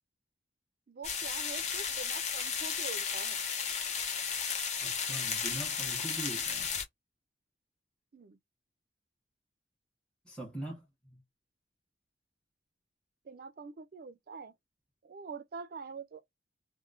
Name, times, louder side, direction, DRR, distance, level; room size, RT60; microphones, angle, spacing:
voice 1, 0.9-3.4 8.1-8.4 13.3-14.5 15.0-16.2, right 5 dB, 50° right, 0.4 m, -45 dB
sound 1, 1.0-6.8, left 6 dB, 35° left, 0.6 m, -34 dB
voice 2, 4.8-6.7 10.2-11.2, right 1 dB, 5° left, 1.1 m, -42 dB
3.0 x 2.1 x 2.4 m
head